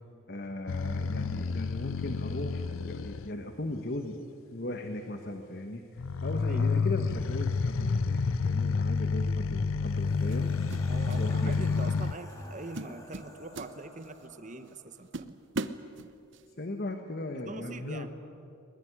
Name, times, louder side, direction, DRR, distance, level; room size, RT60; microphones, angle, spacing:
voice 1, 0.3-10.5 11.2-11.8 16.5-18.1, left 1 dB, 50° left, 6 dB, 1.4 m, -38 dB
sound 1, 0.7-3.3 6.0-12.2, left 4 dB, 85° left, 0.6 m, -29 dB
sound 2, 9.0-9.2 10.3-11.3 11.5-11.8 12.3-12.5 12.7-14.3 14.7-14.8 15.1-16.5, right 3 dB, 60° right, 0.9 m, -39 dB
sound 3, 9.8-15.1, left 1 dB, 15° left, 2.8 m, -51 dB
voice 2, 10.9-15.4 17.3-18.1, right 2 dB, 35° right, 11 dB, 1.1 m, -43 dB
21.5 x 20.5 x 9.9 m, 2.6 s
head